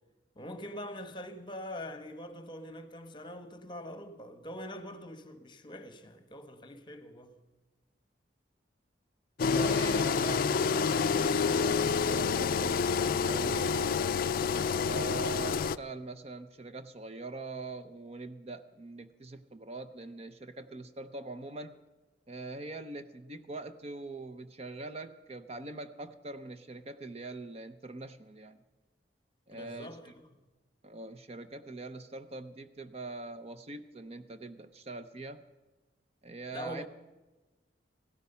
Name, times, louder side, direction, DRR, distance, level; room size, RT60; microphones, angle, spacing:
voice 1, 0.3-7.4 29.5-30.4 36.5-36.9, left 1 dB, 25° left, 1.2 m, -43 dB
Engine, 9.4-15.8, left 5 dB, 50° left, 0.4 m, -28 dB
voice 2, 9.4-13.8 14.8-21.8 22.3-28.6 29.5-29.9 30.8-35.4 36.2-36.9, right 3 dB, 35° right, 0.6 m, -43 dB
16.0 x 12.5 x 5.5 m
head